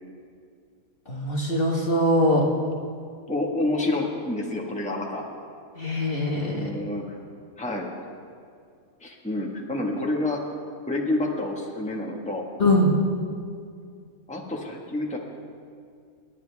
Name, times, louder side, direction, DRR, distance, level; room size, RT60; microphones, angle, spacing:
voice 1, 1.1-2.4 5.8-6.7 12.6-12.9, left 1 dB, 40° left, -2 dB, 1.7 m, -22 dB
voice 2, 3.3-5.2 6.5-7.2 7.6-7.9 9.0-10.4 10.9-12.5 14.3-15.2, left 2 dB, 5° left, -1 dB, 1.6 m, -28 dB
29.5 x 10.5 x 3.5 m, 2.3 s
omnidirectional pair, 1.5 m